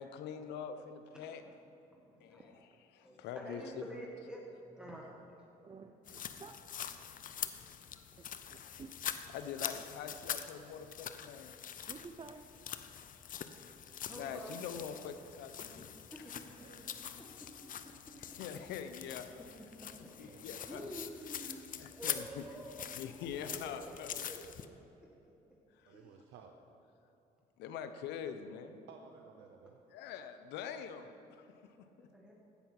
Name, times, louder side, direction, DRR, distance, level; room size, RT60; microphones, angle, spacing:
voice 1, 0.0-1.4 2.2-2.5 2.9-3.8 9.3-11.5 14.1-15.9 18.4-19.3 20.2-20.9 21.8-22.4 23.0-24.1 25.8-26.0 27.6-28.8 29.9-31.7, left 8 dB, 85° left, 9 dB, 0.8 m, -44 dB
voice 2, 1.1-1.5 1.9-2.5 3.0-5.3 8.2-8.3 13.1-13.2 14.1-14.5 15.6-15.9 16.2-16.4 16.8-17.5 19.4-19.5 19.8-23.2 23.6-24.7 25.9-26.2 32.1-32.3, right 1 dB, 5° right, -3 dB, 1.7 m, -49 dB
voice 3, 5.6-6.6 8.2-8.9 10.7-10.8 11.9-12.4, right 4 dB, 30° right, 6 dB, 0.7 m, -52 dB
sound 1, 6.0-24.7, left 9 dB, 50° left, 0.6 m, -44 dB
voice 4, 6.3-6.7 7.0-7.2 16.6-16.9 18.8-19.0 20.2-21.0 25.8-26.5 28.9-29.8, right 6 dB, 90° right, 3 dB, 0.7 m, -58 dB
15.5 x 5.8 x 5.9 m, 3.0 s
supercardioid pair, 75°, 17 cm